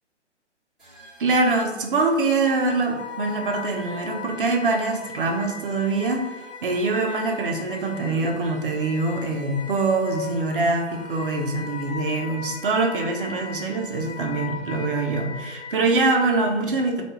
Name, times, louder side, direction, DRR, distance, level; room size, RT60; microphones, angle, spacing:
sound 1, 0.8-12.2, right 4 dB, ahead, 0.6 m, -52 dB
voice 1, 1.2-6.3 6.6-17.0, right 3 dB, 50° right, 3 dB, 0.4 m, -24 dB
Wind instrument woodwind instrument, 2.5-16.2, left 6 dB, 65° left, 0.6 m, -39 dB
2.3 x 2.2 x 2.9 m, 1.1 s
figure-of-eight pair, 130°, 36 cm